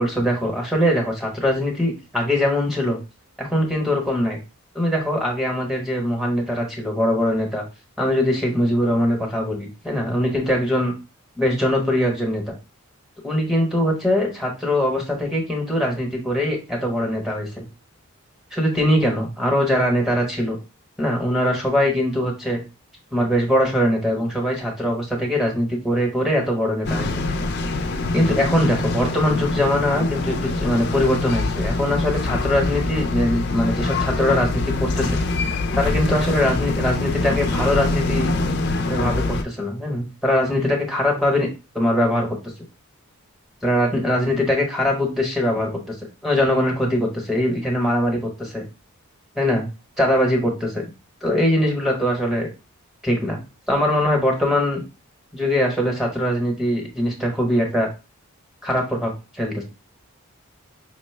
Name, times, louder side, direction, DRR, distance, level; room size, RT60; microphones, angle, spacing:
voice 1, 0.0-3.0 3.4-4.4 4.7-7.6 8.0-10.9 11.4-12.4 13.2-17.6 18.5-20.6 21.0-22.6 23.1-27.1 28.1-35.2 35.4-38.3 38.9-41.5 41.7-42.4 43.6-45.9 46.2-48.6 49.4-49.7 50.0-50.9 51.2-52.5 53.0-53.4 53.7-54.8 55.3-57.9 58.6-59.6, left 1 dB, ahead, 0 dB, 1.0 m, -22 dB
sound 1, 26.8-39.4, left 2 dB, 50° left, 0.4 m, -24 dB
5.3 x 2.1 x 3.2 m, 0.29 s
head